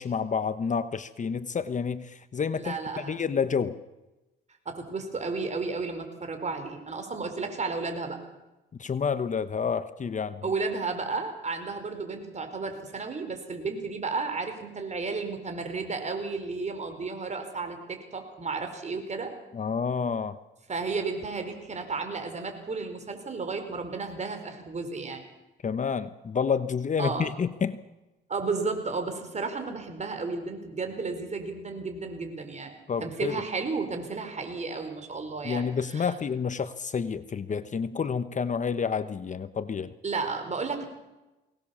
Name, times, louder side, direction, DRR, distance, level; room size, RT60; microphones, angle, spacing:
voice 1, 0.0-3.8 8.8-10.5 19.5-20.4 25.6-27.8 32.9-33.4 35.4-39.9, left 6 dB, 40° left, 13 dB, 1.0 m, -29 dB
voice 2, 2.6-3.2 4.6-8.2 10.4-19.3 20.7-25.2 27.0-27.3 28.3-32.7 33.0-35.6 35.9-36.1 40.0-40.9, right 4 dB, 35° right, 6 dB, 5.0 m, -33 dB
23.0 x 19.0 x 7.2 m, 1.0 s
cardioid pair, 90°, 20 cm